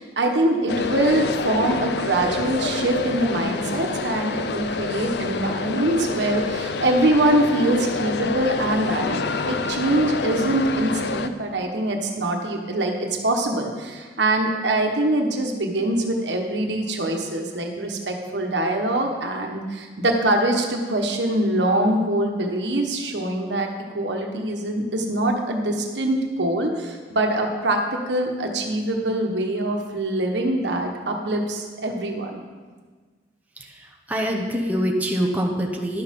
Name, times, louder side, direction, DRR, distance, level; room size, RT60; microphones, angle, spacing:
voice 1, 0.0-23.7 23.9-32.4, right 1 dB, 80° right, 2 dB, 1.3 m, -23 dB
sound 1, 0.7-11.3, left 4 dB, 65° left, 0.5 m, -27 dB
voice 2, 33.6-36.0, equal, 10° right, 0 dB, 0.9 m, -25 dB
11.5 x 6.6 x 5.3 m, 1.4 s
head